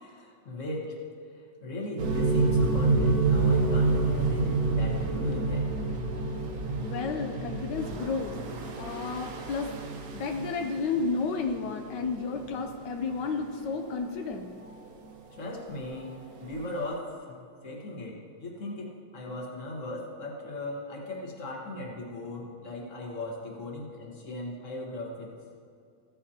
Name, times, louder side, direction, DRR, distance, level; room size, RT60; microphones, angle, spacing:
voice 1, 0.0-1.0 1.6-5.7 15.3-16.1 16.4-25.4, left 1 dB, 45° left, -2 dB, 1.7 m, -37 dB
sound 1, 2.0-13.5 13.9-14.2 14.7-14.8 15.7-15.8 16.6-16.7, right 3 dB, 60° right, 1.3 m, -28 dB
voice 2, 6.8-8.3 8.8-9.7 10.1-14.5, left 4 dB, 80° left, 4 dB, 1.3 m, -32 dB
15.0 x 8.8 x 2.8 m, 2.2 s
omnidirectional pair, 1.8 m